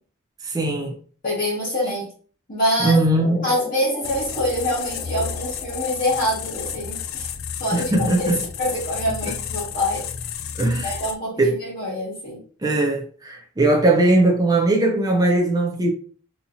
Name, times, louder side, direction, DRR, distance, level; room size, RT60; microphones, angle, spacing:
voice 1, 0.4-1.0 2.8-3.4 7.7-8.4 10.6-11.0 11.4-11.6 12.6-15.9, right 2 dB, 15° right, 0.5 m, -19 dB
voice 2, 1.2-2.0 2.5-3.0 3.4-7.3 7.6-10.0 10.8-12.4, left 1 dB, 40° left, 0.9 m, -25 dB
sound 1, 3.1-7.1, left 1 dB, 10° left, 1.2 m, -38 dB
sound 2, 4.0-11.2, left 8 dB, 70° left, 0.4 m, -32 dB
4.0 x 2.8 x 2.7 m
head